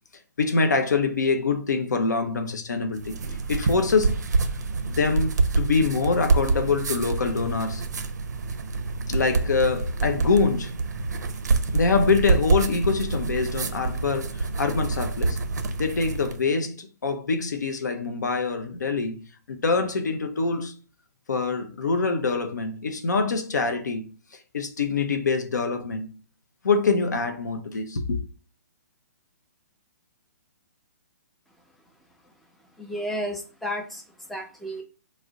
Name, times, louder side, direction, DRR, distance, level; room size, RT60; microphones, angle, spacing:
voice 1, 0.4-3.2 3.5-4.2 4.9-7.8 9.1-10.7 11.7-15.4 15.8-19.2 19.5-20.7 21.3-24.1 24.5-26.1 26.6-28.2, left 4 dB, 80° left, 0.6 m, -25 dB
sound 1, 2.9-16.4, right 3 dB, 75° right, 0.4 m, -26 dB
voice 2, 32.8-34.0 34.3-34.8, equal, ahead, 0.4 m, -32 dB
2.4 x 2.0 x 3.8 m
hypercardioid pair, 135°, 9 cm